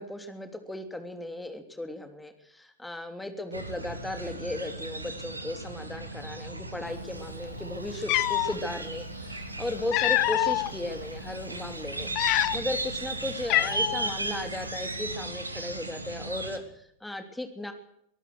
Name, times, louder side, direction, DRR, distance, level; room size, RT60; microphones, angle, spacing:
voice 1, 0.0-17.7, left 1 dB, 5° left, 7 dB, 3.2 m, -36 dB
sound 1, 3.5-16.6, right 2 dB, 80° right, 2.8 m, -36 dB
Cat, 7.5-7.6 8.0-8.5 9.5-10.7 11.2-11.4 12.0-12.8 13.1-13.2 13.5-14.1, left 18 dB, 40° left, 0.9 m, -26 dB
24.0 x 18.5 x 6.3 m, 0.73 s
figure-of-eight pair, 90°, 0 cm